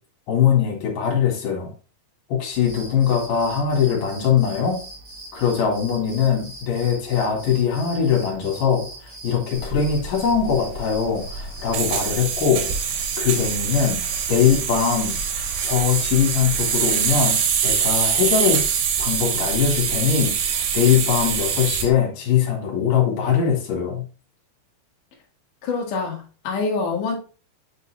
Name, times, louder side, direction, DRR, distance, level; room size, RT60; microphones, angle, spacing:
voice 1, 0.3-1.7 2.3-4.8 5.3-12.7 13.2-15.2 15.6-18.6 19.0-24.0, left 7 dB, 55° left, -1 dB, 2.7 m, -21 dB
sound 1, 2.5-21.9, right 1 dB, 40° right, 2.2 m, -41 dB
sound 2, 9.6-21.9, right 7 dB, 85° right, 3.9 m, -24 dB
voice 2, 25.6-27.2, left 4 dB, 85° left, -1 dB, 1.8 m, -25 dB
8.3 x 5.4 x 2.3 m, 0.36 s
omnidirectional pair, 5.9 m